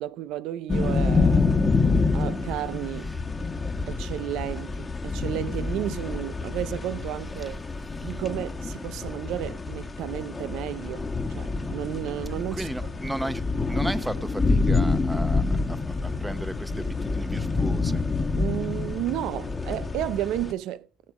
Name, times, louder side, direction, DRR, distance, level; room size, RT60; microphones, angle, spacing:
voice 1, 0.0-1.8 2.1-3.1 3.9-7.6 8.0-12.7 18.4-20.9, right 13 dB, 75° right, 0.5 m, -32 dB
sound 1, 0.7-20.5, left 3 dB, 20° left, 1.3 m, -27 dB
voice 2, 12.5-18.0, right 1 dB, 10° right, 0.9 m, -35 dB
18.5 x 6.4 x 4.9 m
cardioid pair, 100°, 0 cm